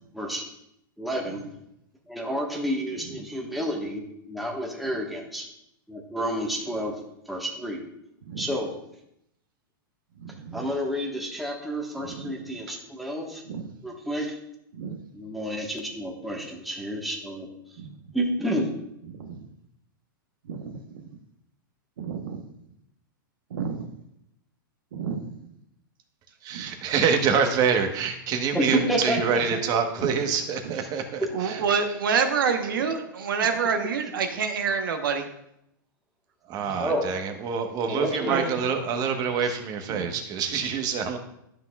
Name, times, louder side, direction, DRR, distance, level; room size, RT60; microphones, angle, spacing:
voice 1, 0.1-0.4 1.0-1.4 2.1-5.5 5.9-7.8 8.4-8.7 10.5-13.4 13.8-14.4 15.1-17.5 18.1-18.7 28.5-29.4 31.2-31.3 36.8-37.1 37.8-38.5, equal, ahead, -2 dB, 1.2 m, -30 dB
voice 2, 10.2-10.6 12.0-12.3 13.5-13.7 14.7-15.0 17.8-17.9 19.1-19.4 20.5-21.1 22.0-22.4 23.5-23.9 24.9-25.4 26.5-26.8 30.6-30.7 31.3-35.3 36.7-36.8 38.3-38.5 39.9-40.1, right 6 dB, 75° right, 6 dB, 1.0 m, -28 dB
voice 3, 26.4-31.6 36.5-41.2, right 6 dB, 35° right, 6 dB, 1.1 m, -26 dB
12.0 x 5.8 x 2.3 m, 0.78 s
hypercardioid pair, 125°, 11 cm